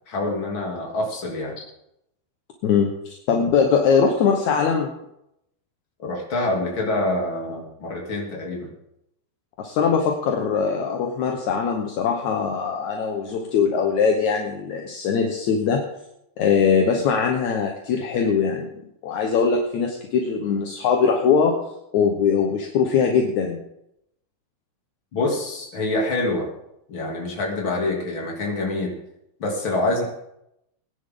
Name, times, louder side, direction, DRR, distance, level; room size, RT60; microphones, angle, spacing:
voice 1, 0.1-1.6 6.0-8.7 25.1-26.5 26.9-28.9 29.4-30.0, left 2 dB, 35° left, -1 dB, 3.1 m, -26 dB
voice 2, 3.3-4.9 9.6-15.8 16.4-18.7 19.0-21.5 21.9-23.6, left 6 dB, 65° left, 2 dB, 2.0 m, -21 dB
21.5 x 10.0 x 3.8 m, 0.81 s
omnidirectional pair, 4.6 m